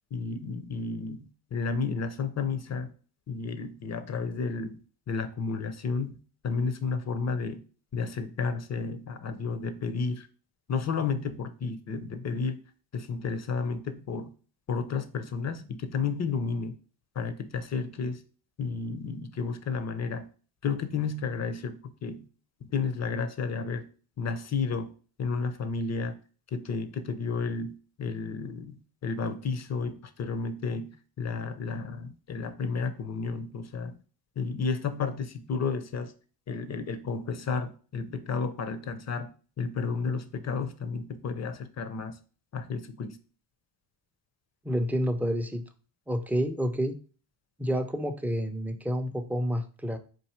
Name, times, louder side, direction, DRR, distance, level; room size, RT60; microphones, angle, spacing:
voice 1, 0.1-2.9 3.3-4.8 5.1-7.6 7.9-10.3 10.7-12.6 12.9-14.3 14.7-16.7 17.2-18.2 18.6-20.3 20.6-22.3 22.6-23.9 24.2-24.9 25.2-26.2 26.5-33.9 34.4-36.1 36.5-39.3 39.6-42.2 42.5-43.2, left 4 dB, 35° left, 10 dB, 0.7 m, -32 dB
voice 2, 44.6-45.6 46.1-46.9 47.6-50.0, equal, 5° right, 5 dB, 0.5 m, -29 dB
4.6 x 2.6 x 4.4 m, 0.39 s
cardioid pair, 85°, 48 cm